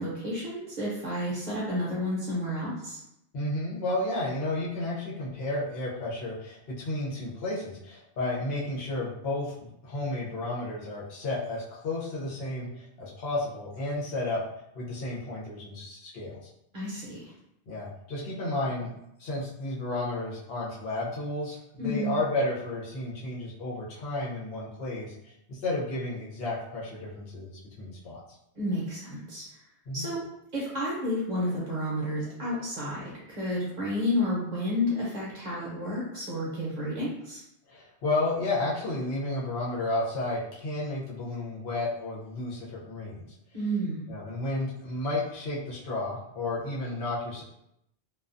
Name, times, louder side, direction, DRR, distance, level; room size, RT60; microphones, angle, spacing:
voice 1, 0.0-3.0 16.7-17.3 21.8-22.1 28.6-29.6 29.9-30.2 30.5-37.4 43.5-44.0, left 1 dB, 45° right, -7 dB, 0.7 m, -31 dB
voice 2, 3.3-14.4 14.7-16.4 17.7-18.9 19.2-28.2 29.9-30.1 37.7-43.3 44.1-47.4, left 2 dB, 70° left, -6 dB, 1.0 m, -32 dB
2.4 x 2.3 x 2.5 m, 0.81 s
omnidirectional pair, 1.1 m